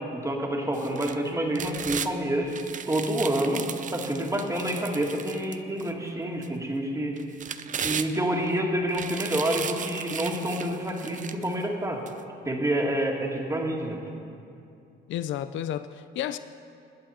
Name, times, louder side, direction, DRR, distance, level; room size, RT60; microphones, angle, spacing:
voice 1, 0.1-2.5 2.9-3.7 3.9-7.2 7.8-12.0 12.5-14.0, right 1 dB, 15° right, 1 dB, 1.9 m, -28 dB
sound 1, 0.7-2.1 2.5-5.9 6.4-6.5 7.2-8.5 8.9-11.5 12.1-12.2, right 7 dB, 40° right, 0.5 m, -36 dB
voice 2, 15.1-16.4, left 11 dB, 70° left, 12 dB, 0.4 m, -31 dB
20.0 x 7.8 x 4.3 m, 2.5 s
cardioid pair, 90°, 20 cm